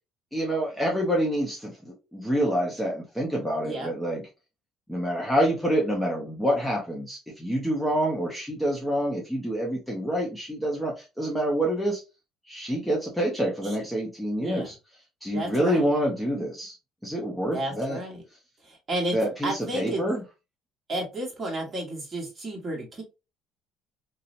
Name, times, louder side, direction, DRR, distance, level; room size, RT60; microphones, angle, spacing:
voice 1, 0.3-4.3 4.9-12.0 12.5-14.8 15.2-16.8 17.0-18.0 19.1-20.2, equal, 5° left, -2 dB, 0.6 m, -27 dB
voice 2, 15.3-15.8 17.5-18.2 18.6-19.2 19.4-20.0 20.9-23.0, right 1 dB, 30° right, -1 dB, 1.2 m, -32 dB
2.7 x 2.0 x 2.5 m, 0.27 s
cardioid pair, 120°, 0 cm